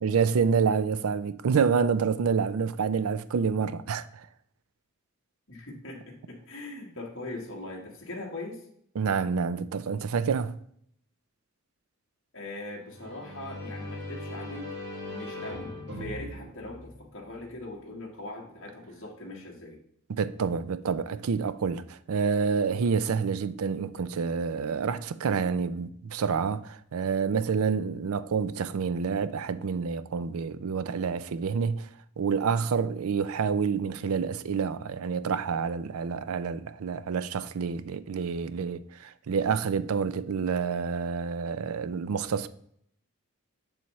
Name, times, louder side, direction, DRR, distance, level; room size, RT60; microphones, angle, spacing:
voice 1, 0.0-4.3 9.0-10.6 20.1-31.9 32.2-42.5, right 5 dB, 75° right, 0.4 m, -28 dB
voice 2, 5.5-8.6 12.3-14.7 15.1-15.7 16.0-19.8, left 2 dB, 60° left, 1.4 m, -40 dB
sound 1, 12.8-17.6, left 1 dB, 50° right, 2.3 m, -40 dB
7.1 x 7.0 x 3.1 m
head